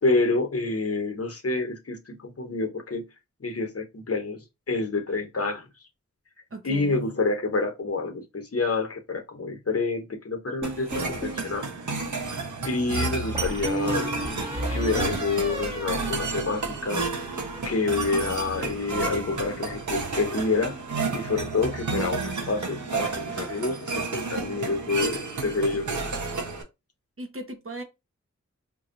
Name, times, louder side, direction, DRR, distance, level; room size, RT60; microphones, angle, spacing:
voice 1, 0.0-3.0 3.4-4.4 4.7-5.6 6.6-11.7 12.6-17.1 17.6-20.8 21.1-26.1, left 3 dB, 55° left, 0.9 m, -28 dB
voice 2, 6.5-7.0 27.2-27.8, right 1 dB, 50° right, 0.9 m, -37 dB
sound 1, 10.6-11.5 13.3-16.8 17.1-17.6, right 1 dB, 20° right, 1.3 m, -33 dB
sound 2, 10.6-26.6, right 4 dB, 85° right, 0.9 m, -31 dB
4.5 x 2.6 x 2.5 m
cardioid pair, 45°, 29 cm